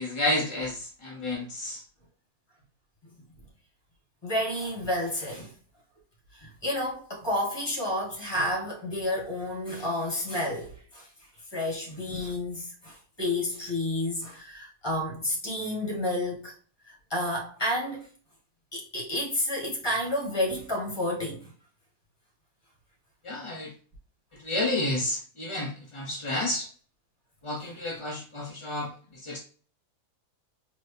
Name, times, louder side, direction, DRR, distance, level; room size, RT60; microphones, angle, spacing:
voice 1, 0.0-1.8 23.2-23.7 24.4-26.7 27.4-29.4, left 1 dB, 35° left, 0.5 m, -31 dB
voice 2, 4.2-5.5 6.3-11.1 11.5-16.5 17.1-18.1 18.7-21.5 27.6-27.7, left 1 dB, 15° left, 1.6 m, -30 dB
4.3 x 2.9 x 3.3 m
omnidirectional pair, 1.6 m